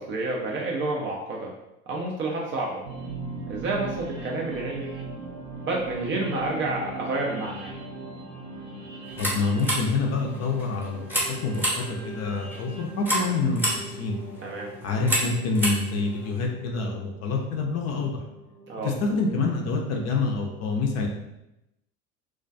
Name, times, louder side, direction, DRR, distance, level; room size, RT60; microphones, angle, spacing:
voice 1, 0.0-1.5 1.9-2.8 3.5-5.0 5.6-7.7 14.4-14.7 18.7-18.9, right 2 dB, 30° right, -2 dB, 0.3 m, -29 dB
sound 1, 2.8-20.0, right 3 dB, 75° right, 0.8 m, -40 dB
sound 2, 9.0-16.5, equal, 5° right, 0.7 m, -31 dB
voice 2, 9.2-11.0 11.4-13.6 13.9-14.2 14.8-18.2 18.8-21.1, left 3 dB, 40° left, 0 dB, 0.5 m, -27 dB
2.2 x 2.2 x 2.5 m, 0.89 s
hypercardioid pair, 85°, 43 cm